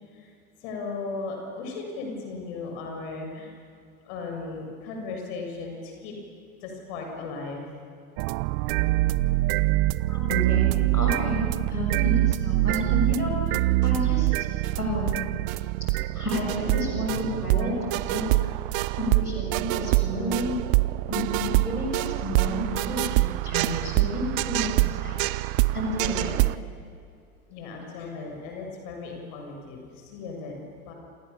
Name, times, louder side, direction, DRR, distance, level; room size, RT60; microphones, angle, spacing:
voice 1, 0.6-3.5 4.0-6.1 6.6-7.8 26.0-26.4 27.5-30.9, left 3 dB, 50° left, 1 dB, 7.3 m, -36 dB
sound 1, 8.2-26.6, right 20 dB, 40° right, 0.7 m, -25 dB
voice 2, 10.1-14.5 14.7-15.3 16.1-18.3 18.9-20.5 21.1-25.2 25.7-26.3, equal, 85° left, -1 dB, 7.2 m, -31 dB
29.5 x 28.0 x 7.2 m, 2.4 s
figure-of-eight pair, 85°, 44 cm